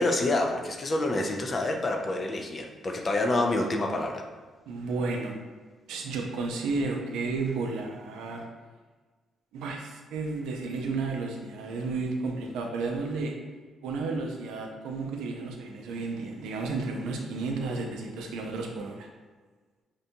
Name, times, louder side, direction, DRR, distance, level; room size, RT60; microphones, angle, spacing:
voice 1, 0.0-4.2, left 2 dB, 35° left, 3 dB, 0.4 m, -27 dB
voice 2, 4.7-5.4 5.9-8.4 9.5-13.3 13.8-19.1, right 3 dB, 90° right, 1 dB, 0.4 m, -32 dB
2.6 x 2.2 x 2.8 m, 1.4 s
cardioid pair, 90°, 0 cm